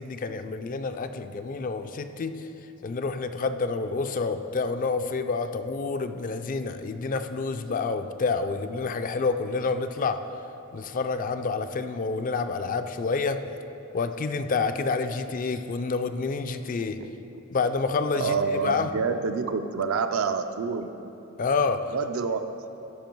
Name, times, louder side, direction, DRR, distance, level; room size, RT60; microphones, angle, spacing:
voice 1, 0.0-2.5 2.8-10.2 10.7-13.4 13.9-17.0 17.5-18.9 21.4-21.9, left 4 dB, 40° left, 9 dB, 0.4 m, -28 dB
voice 2, 18.1-20.9 21.9-22.5, right 5 dB, 75° right, 9 dB, 0.5 m, -27 dB
13.0 x 5.4 x 4.5 m, 3.0 s
head